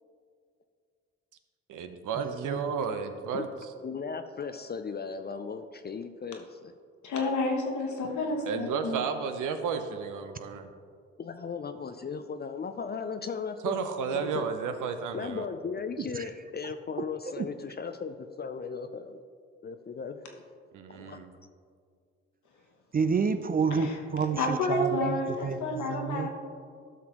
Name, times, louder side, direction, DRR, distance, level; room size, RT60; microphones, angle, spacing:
voice 1, 1.7-3.5 8.5-10.7 13.6-15.4 20.7-21.3, right 6 dB, 65° right, 8 dB, 0.8 m, -32 dB
voice 2, 2.2-2.7 16.1-16.3 17.4-17.5 22.9-26.3, right 5 dB, 25° right, 9 dB, 0.4 m, -29 dB
voice 3, 3.8-6.7 11.2-13.7 14.1-14.5 15.1-19.2 19.6-20.2 20.9-21.2, left 5 dB, 30° left, 8 dB, 0.5 m, -37 dB
voice 4, 7.0-9.0 23.7-24.0 24.4-26.3, left 2 dB, 60° left, 2 dB, 1.4 m, -30 dB
12.5 x 5.9 x 3.0 m, 2.2 s
hypercardioid pair, 50°, 33 cm